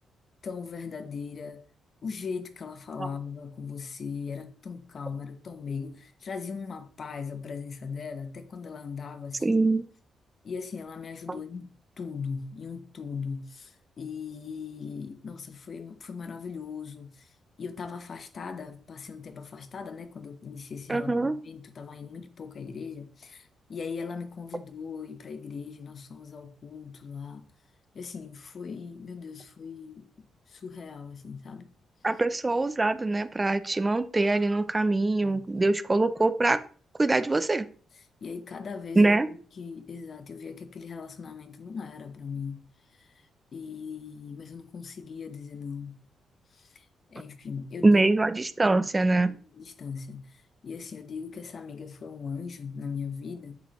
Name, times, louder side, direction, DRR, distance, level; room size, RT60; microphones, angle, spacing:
voice 1, 0.4-1.6 2.0-9.6 10.4-17.3 17.6-27.5 27.9-30.1 30.5-31.7 35.2-35.4 38.2-42.6 43.0-43.3 43.5-45.9 46.5-48.0 49.2-53.5, left 5 dB, 40° left, 0.9 m, -39 dB
voice 2, 9.4-9.9 11.3-11.4 20.9-21.4 32.0-36.6 37.0-37.7 39.0-39.3 47.8-49.3, right 2 dB, 15° right, 0.5 m, -23 dB
8.4 x 7.2 x 3.0 m
cardioid pair, 150°, 0 cm